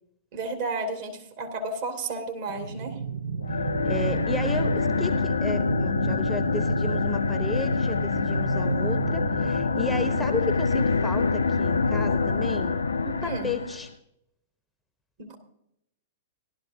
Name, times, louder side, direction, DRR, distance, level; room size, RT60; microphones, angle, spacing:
voice 1, 0.3-3.0 13.2-13.5 15.2-15.4, right 3 dB, 50° right, 3 dB, 2.3 m, -32 dB
sound 1, 2.5-10.5, right 6 dB, 70° right, 0.5 m, -34 dB
sound 2, 3.4-13.9, left 4 dB, 70° left, 0.5 m, -25 dB
voice 2, 3.8-13.9, left 2 dB, 5° left, 9 dB, 0.8 m, -33 dB
17.0 x 12.0 x 2.7 m, 0.79 s
figure-of-eight pair, 100°, 0 cm